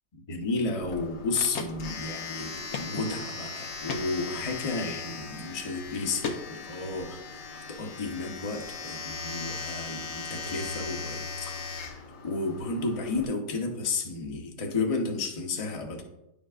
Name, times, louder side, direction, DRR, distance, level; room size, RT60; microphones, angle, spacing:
voice 1, 0.1-16.0, left 3 dB, 30° left, 2 dB, 0.7 m, -32 dB
Domestic sounds home sounds, 0.8-13.2, left 4 dB, 85° left, 1.6 m, -39 dB
sound 1, 0.9-1.0 1.5-1.7 2.0-2.1 2.7-2.9 3.3-3.4 3.9-4.1 5.2-5.4 5.9-6.8, left 5 dB, 60° left, 0.8 m, -34 dB
10.5 x 5.1 x 2.4 m, 0.87 s
omnidirectional pair, 1.8 m